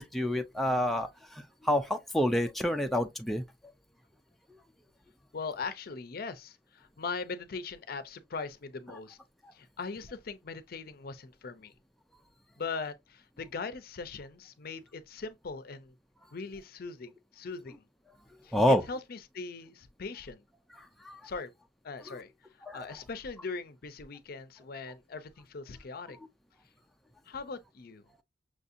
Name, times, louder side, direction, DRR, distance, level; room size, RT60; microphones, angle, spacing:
voice 1, 0.0-3.4 18.5-18.8 21.0-21.2 22.1-22.2 22.6-22.8, equal, ahead, 0.4 m, -28 dB
voice 2, 5.3-9.2 9.5-11.7 12.6-15.9 16.3-17.8 18.4-20.4 21.2-21.5 21.8-22.3 22.7-26.2 27.3-28.0, left 4 dB, 55° left, 0.5 m, -40 dB
6.1 x 2.7 x 2.5 m
head